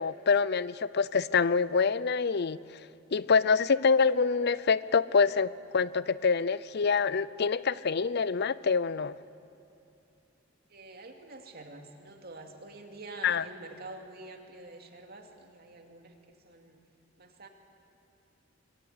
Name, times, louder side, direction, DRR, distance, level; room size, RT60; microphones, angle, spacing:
voice 1, 0.0-2.6 3.1-9.2 13.2-13.5, left 5 dB, 55° left, 18 dB, 0.6 m, -26 dB
voice 2, 10.7-16.1 16.4-16.8 17.2-17.5, right 2 dB, 50° right, 4 dB, 2.6 m, -47 dB
25.5 x 23.0 x 8.9 m, 2.8 s
head